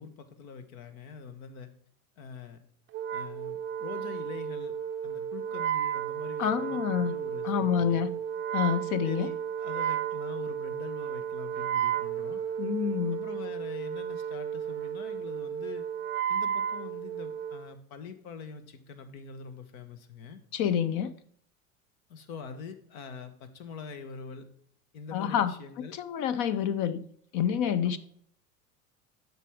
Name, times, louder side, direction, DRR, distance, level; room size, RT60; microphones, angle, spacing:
voice 1, 0.0-1.7 2.2-2.6 3.1-4.7 5.0-8.1 9.0-12.4 13.1-15.8 16.3-20.4 22.1-24.5 24.9-26.0 27.8-28.0, left 6 dB, 75° left, 1.1 m, -44 dB
Wind instrument woodwind instrument, 2.9-17.7, right 9 dB, 30° right, 0.4 m, -33 dB
voice 2, 6.4-7.2 7.4-8.2 8.5-9.3 12.6-13.2 20.5-21.1 25.1-25.5 25.9-27.1 27.3-28.0, left 8 dB, 45° left, 0.5 m, -28 dB
8.2 x 6.0 x 3.5 m
hypercardioid pair, 85°, 42 cm